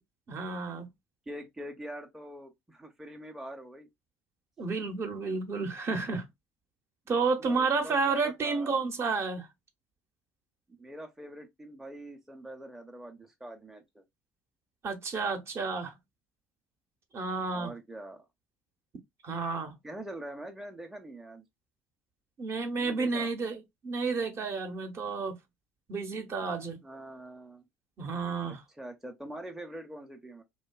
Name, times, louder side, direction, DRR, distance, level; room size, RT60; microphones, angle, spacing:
voice 1, 0.3-0.9 4.6-6.2 7.1-9.5 14.8-15.9 17.1-17.7 19.2-19.7 22.4-25.4 25.9-26.8 28.0-28.6, right 4 dB, 40° right, 0.7 m, -31 dB
voice 2, 1.3-3.9 7.2-8.9 10.8-14.0 17.5-18.3 19.8-21.4 22.8-23.3 26.8-27.7 28.5-30.4, right 1 dB, 5° right, 0.5 m, -44 dB
2.6 x 2.2 x 2.2 m
hypercardioid pair, 70°, 7 cm